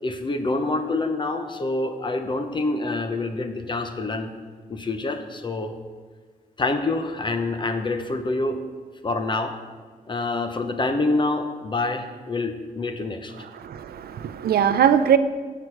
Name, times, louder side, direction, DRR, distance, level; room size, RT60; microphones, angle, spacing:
voice 1, 0.0-4.3 4.7-5.7 6.6-8.6 9.0-9.6 10.1-13.3, left 2 dB, 30° left, 7 dB, 0.8 m, -26 dB
voice 2, 13.6-15.2, right 9 dB, 90° right, 12 dB, 0.5 m, -20 dB
16.0 x 5.9 x 4.7 m, 1.5 s
wide cardioid pair, 155°, 15 cm